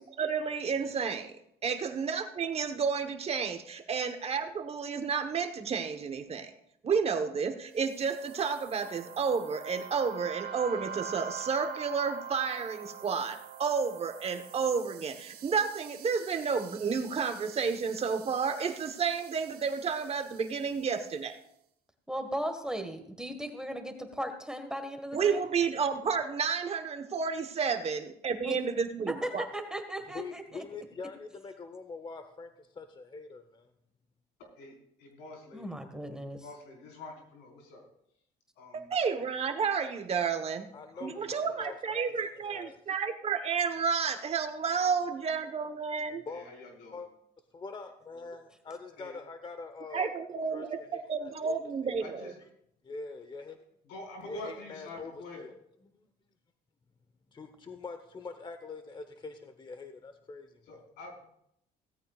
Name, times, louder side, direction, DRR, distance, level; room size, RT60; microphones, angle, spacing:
voice 1, 0.2-1.3 1.6-6.5 6.8-21.4 25.1-29.4 38.7-40.7 41.0-46.2 49.9-52.3, right 6 dB, 35° right, 8 dB, 1.2 m, -31 dB
sound 1, 7.8-21.2, right 7 dB, 60° right, 1.8 m, -46 dB
voice 2, 22.1-25.4 28.4-28.6 29.0-30.6 35.5-36.4, equal, 5° right, 6 dB, 1.6 m, -37 dB
voice 3, 30.0-33.7 40.7-42.8 44.7-44.8 46.3-46.5 46.9-47.1 47.5-50.1 50.5-51.6 52.8-53.6 54.2-55.5 56.0-56.1 57.3-60.8, left 4 dB, 25° left, 8 dB, 1.0 m, -44 dB
voice 4, 34.6-35.8 36.4-37.8 38.6-38.9 40.9-41.6 46.3-47.0 49.0-49.2 52.0-52.3 53.8-55.5 60.7-61.3, left 2 dB, 85° left, 0 dB, 4.7 m, -46 dB
17.0 x 14.5 x 2.4 m, 0.73 s
cardioid pair, 110°, 17 cm